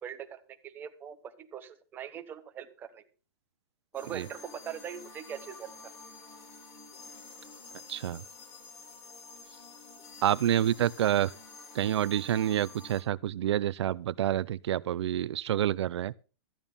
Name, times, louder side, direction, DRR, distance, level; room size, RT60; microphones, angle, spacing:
voice 1, 0.0-3.0 3.9-5.7, right 9 dB, 15° right, 1.0 m, -42 dB
sound 1, 3.9-13.0, left 4 dB, 25° left, 2.2 m, -49 dB
voice 2, 7.9-8.2 10.2-11.3 11.7-16.1, right 11 dB, 90° right, 0.6 m, -28 dB
13.5 x 9.1 x 5.5 m
supercardioid pair, 175°, 14 cm